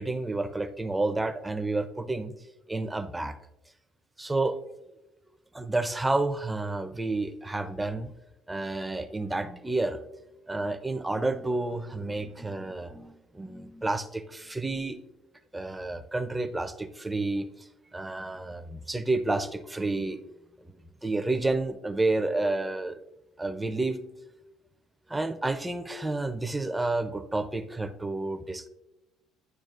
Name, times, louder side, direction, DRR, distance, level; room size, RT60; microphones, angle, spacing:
voice 1, 0.0-2.3 2.7-3.4 4.2-4.6 5.5-8.1 8.5-10.0 10.5-15.0 15.5-17.5 17.9-20.2 21.0-23.0 23.4-24.0 25.1-28.7, right 2 dB, 10° right, 10 dB, 0.5 m, -30 dB
10.5 x 4.8 x 2.5 m, 0.93 s
cardioid pair, 130°, 0 cm